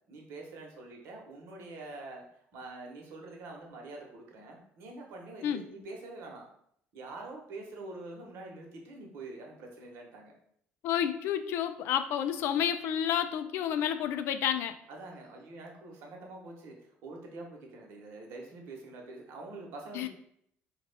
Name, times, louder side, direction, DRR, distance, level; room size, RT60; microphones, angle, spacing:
voice 1, 0.1-2.2 2.5-6.5 6.9-10.3 14.9-20.1, right 2 dB, 75° right, 1 dB, 1.0 m, -45 dB
voice 2, 10.8-14.8 19.9-20.1, left 9 dB, 70° left, 10 dB, 0.4 m, -30 dB
4.7 x 2.4 x 3.4 m, 0.69 s
cardioid pair, 150°, 4 cm